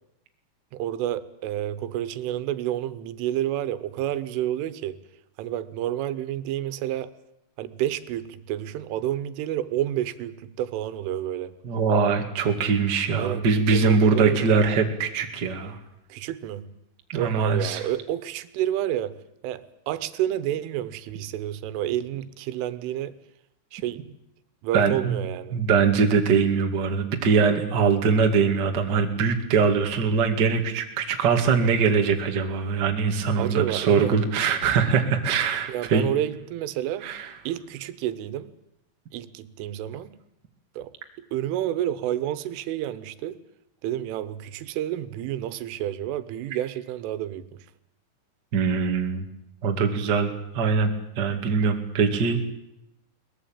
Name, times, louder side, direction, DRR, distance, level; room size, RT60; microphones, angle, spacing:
voice 1, 0.7-5.0 5.4-7.1 7.6-11.5 13.2-14.4 16.1-16.7 17.2-19.2 19.4-23.2 23.7-24.1 24.6-25.6 33.4-34.2 35.7-37.1 37.5-38.5 39.1-40.2 40.8-40.9 41.3-43.4 43.8-47.6, right 12 dB, 90° right, 14 dB, 3.6 m, -29 dB
voice 2, 11.6-15.8 17.1-17.8 24.7-25.2 25.5-36.1 37.0-37.3 48.5-49.2 49.6-52.4, right 5 dB, 35° right, 4 dB, 1.8 m, -22 dB
22.5 x 19.5 x 8.9 m, 0.82 s
omnidirectional pair, 5.5 m